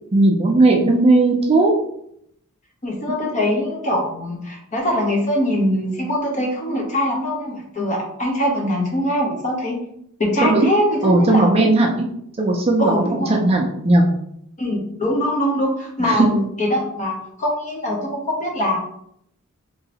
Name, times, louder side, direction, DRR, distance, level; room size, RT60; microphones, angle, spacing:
voice 1, 0.1-1.7 10.4-10.7 11.0-12.1 12.4-13.0 13.3-14.1 16.0-16.3, right 2 dB, 25° right, 1 dB, 0.4 m, -16 dB
voice 2, 2.8-9.8 10.2-11.5 12.8-13.3 14.6-18.8, left 1 dB, 35° left, -1 dB, 0.8 m, -22 dB
3.0 x 2.8 x 2.8 m, 0.72 s
head